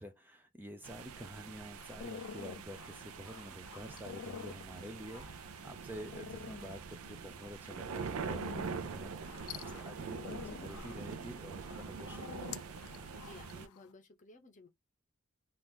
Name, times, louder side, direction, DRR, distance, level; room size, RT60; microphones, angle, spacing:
voice 1, 0.0-9.3 9.5-12.7, equal, 10° right, 0.4 m, -49 dB
sound 1, 0.8-13.7, right 5 dB, 80° right, 0.4 m, -44 dB
sound 2, 1.8-13.9, left 7 dB, 85° left, 0.4 m, -50 dB
voice 2, 13.1-14.7, left 3 dB, 35° left, 0.7 m, -56 dB
2.9 x 2.5 x 3.5 m
head